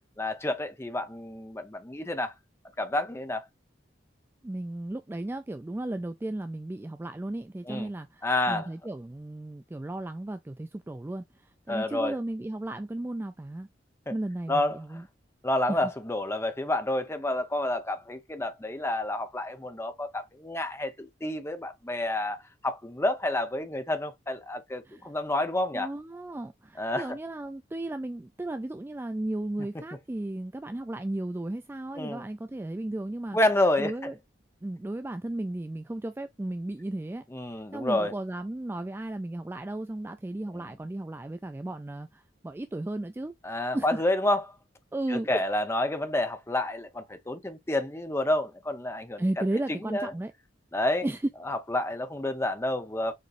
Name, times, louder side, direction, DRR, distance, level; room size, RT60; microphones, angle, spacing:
voice 1, 0.2-2.3 2.8-3.5 7.7-7.9 8.2-8.7 11.7-12.2 14.1-14.2 14.5-15.0 15.4-25.9 26.8-27.2 32.0-32.2 33.3-34.1 37.3-38.1 40.5-40.7 43.4-44.4 45.1-49.2 49.8-50.1 50.7-51.1 51.4-53.1, left 1 dB, 15° left, 0.8 m, -29 dB
voice 2, 4.4-11.2 11.7-13.7 14.1-15.0 15.7-15.9 24.9-25.0 25.7-33.4 33.8-34.1 34.6-37.2 37.7-43.3 43.7-44.0 44.9-45.4 49.2-50.3 51.0-51.2, right 1 dB, 10° right, 0.3 m, -34 dB
6.6 x 3.0 x 2.5 m
head